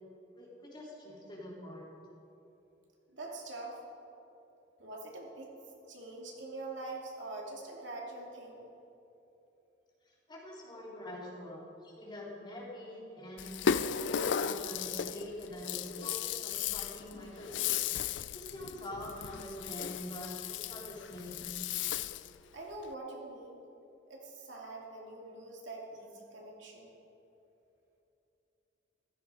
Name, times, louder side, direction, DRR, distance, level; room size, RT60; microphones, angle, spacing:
voice 1, 0.3-1.9 10.0-13.6 14.0-17.8 18.3-21.5, left 1 dB, 25° left, -5 dB, 3.5 m, -45 dB
voice 2, 3.1-3.8 4.8-5.5 5.9-8.7 22.5-23.6 24.1-26.9, right 2 dB, 80° right, -2 dB, 2.7 m, -44 dB
Rattle (instrument), 13.4-22.4, left 8 dB, 80° left, 0.4 m, -35 dB
15.5 x 14.0 x 4.9 m, 2.9 s
head